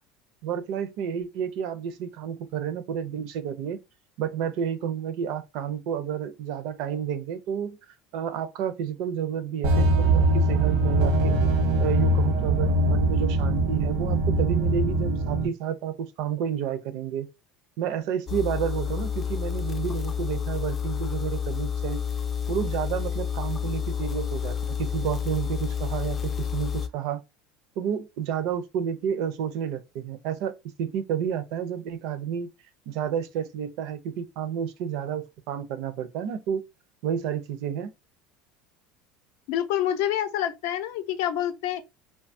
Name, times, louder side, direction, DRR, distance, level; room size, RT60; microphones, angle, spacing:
voice 1, 0.4-3.8 4.2-7.8 8.1-11.4 11.8-17.3 17.8-22.0 22.5-27.2 27.8-30.5 30.8-32.5 32.9-36.6 37.0-37.9, right 8 dB, 60° right, 0.5 m, -30 dB
sound 1, 9.6-15.5, right 2 dB, 80° right, 0.9 m, -22 dB
sound 2, 18.3-26.9, left 7 dB, 25° left, 0.3 m, -29 dB
voice 2, 39.5-41.8, left 11 dB, 75° left, 0.5 m, -27 dB
2.8 x 2.2 x 2.5 m
cardioid pair, 150°, 0 cm